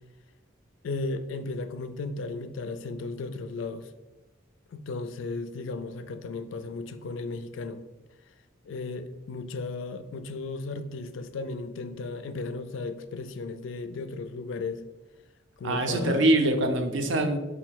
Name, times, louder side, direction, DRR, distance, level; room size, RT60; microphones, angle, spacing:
voice 1, 0.8-3.9 4.7-7.8 8.6-14.8 15.6-16.3, left 3 dB, 75° left, 10 dB, 0.3 m, -35 dB
voice 2, 15.6-17.4, right 1 dB, 70° right, 6 dB, 0.5 m, -24 dB
4.4 x 2.1 x 4.5 m, 1.0 s
head